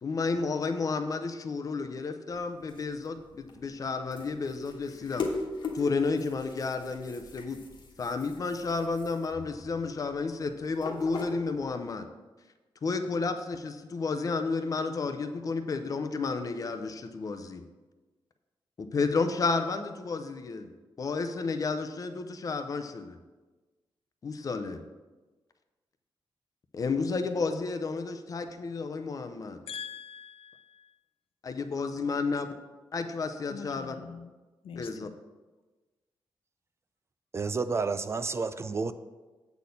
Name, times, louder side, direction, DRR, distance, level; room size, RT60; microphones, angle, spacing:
voice 1, 0.0-5.3 5.7-7.6 8.0-12.1 12.8-17.6 18.8-20.7 21.0-23.2 24.2-24.8 26.7-29.6 31.4-32.5 32.9-33.9 34.8-35.1, left 4 dB, 40° left, 8 dB, 0.6 m, -31 dB
sound 1, 2.3-11.9, left 3 dB, 60° left, 1.3 m, -41 dB
voice 2, 29.7-31.0 33.5-34.3 34.6-35.1, left 6 dB, 90° left, 10 dB, 0.5 m, -43 dB
voice 3, 37.3-38.9, right 4 dB, 30° right, 12 dB, 0.3 m, -30 dB
8.1 x 4.2 x 6.9 m, 1.2 s
wide cardioid pair, 165°, 9 cm